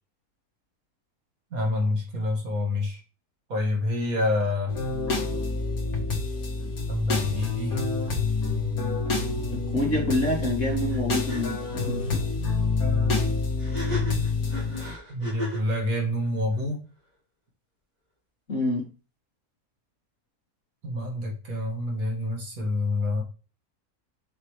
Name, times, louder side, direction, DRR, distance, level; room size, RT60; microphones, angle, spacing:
voice 1, 1.5-3.0 3.5-4.7 6.9-7.8 15.1-16.8 20.8-23.2, left 2 dB, 65° right, 0 dB, 2.2 m, -27 dB
sound 1, 4.7-14.9, left 3 dB, 70° left, 2.2 m, -27 dB
voice 2, 9.5-12.2 18.5-18.9, left 1 dB, 50° left, -2 dB, 2.5 m, -27 dB
sound 2, 10.9-11.0 11.3-11.4 13.6-15.7, equal, 25° right, 3.6 m, -35 dB
6.7 x 5.3 x 3.2 m, 0.35 s
omnidirectional pair, 1.6 m